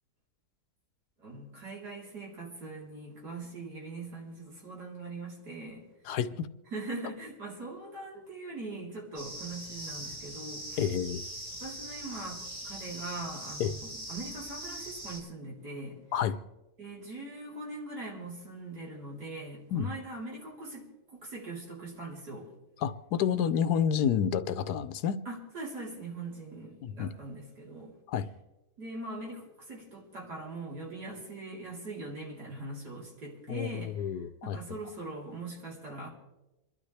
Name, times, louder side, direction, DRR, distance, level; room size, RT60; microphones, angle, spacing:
voice 1, 1.2-5.9 6.7-10.8 11.6-16.0 16.8-22.5 25.3-28.0 28.8-33.9 34.4-36.1, right 2 dB, 85° right, -4 dB, 4.3 m, -41 dB
voice 2, 6.1-6.5 10.8-11.2 13.6-13.7 16.1-16.4 19.7-19.9 22.8-25.2 26.8-27.1 28.1-28.3 33.5-34.8, left 8 dB, 85° left, 12 dB, 1.3 m, -29 dB
sound 1, 9.1-15.2, right 1 dB, 60° right, 6.9 m, -42 dB
27.5 x 12.0 x 3.3 m, 1.0 s
omnidirectional pair, 1.7 m